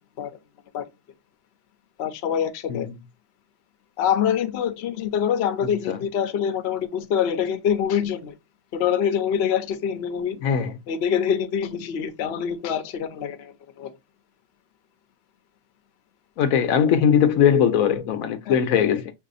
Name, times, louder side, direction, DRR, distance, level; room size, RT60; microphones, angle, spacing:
voice 1, 2.0-2.9 4.0-8.3 8.7-10.4 10.9-13.9 18.5-18.6, left 8 dB, 55° left, 0.8 m, -25 dB
voice 2, 10.4-10.7 16.4-19.1, left 8 dB, 75° left, 1.0 m, -20 dB
5.8 x 2.7 x 2.5 m
omnidirectional pair, 1.5 m